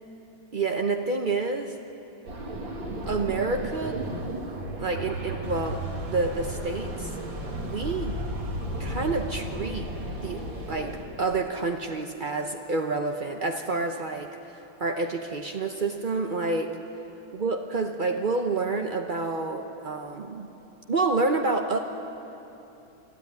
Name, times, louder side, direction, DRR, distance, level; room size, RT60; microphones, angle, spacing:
voice 1, 0.5-1.7 3.1-4.0 4.8-7.1 7.6-8.2 8.8-9.9 10.2-10.9 11.2-16.8 17.3-20.5 20.9-21.8, right 3 dB, 90° right, 4 dB, 0.4 m, -28 dB
sound 1, 2.3-11.0, right 1 dB, 70° right, 3.1 m, -34 dB
24.0 x 13.0 x 9.4 m, 2.9 s
omnidirectional pair, 2.2 m